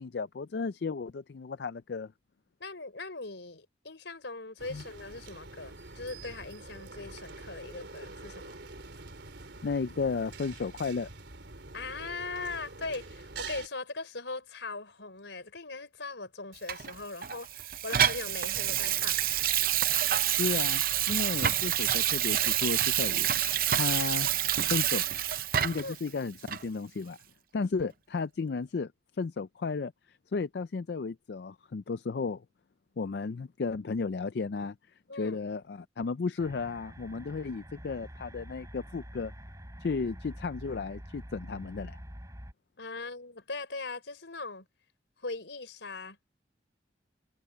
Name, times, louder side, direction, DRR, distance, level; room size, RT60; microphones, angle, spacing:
voice 1, 0.0-2.1 4.7-4.8 9.6-11.1 20.4-20.8 21.1-23.3 23.7-24.3 24.7-25.0 25.6-27.2 27.5-28.9 29.2-32.4 33.0-34.8 35.1-39.3 39.8-42.0, left 4 dB, 65° left, 0.4 m, -34 dB
voice 2, 2.6-8.6 11.7-19.2 25.8-26.0 35.1-35.4 42.8-44.7 45.2-46.2, left 3 dB, 85° left, 4.5 m, -40 dB
sound 1, 4.6-13.7, right 3 dB, 75° right, 3.3 m, -46 dB
Water tap faucet / Sink (filling or washing), 16.7-26.0 26.5-26.6, right 11 dB, 50° right, 0.7 m, -28 dB
sound 2, 36.4-42.5, equal, 15° right, 7.8 m, -46 dB
head